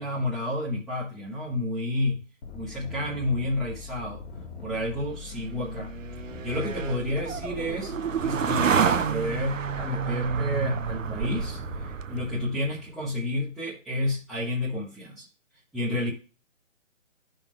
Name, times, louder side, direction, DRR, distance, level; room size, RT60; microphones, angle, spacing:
voice 1, 0.0-2.2 2.5-4.3 4.6-7.9 8.2-15.3 15.7-16.1, left 1 dB, ahead, -12 dB, 1.1 m, -30 dB
sound 1, 2.4-12.0, left 6 dB, 50° left, 1.6 m, -42 dB
sound 2, 5.3-12.7, right 6 dB, 75° right, 0.8 m, -29 dB
12.0 x 5.5 x 3.5 m, 0.35 s
hypercardioid pair, 155°, 38 cm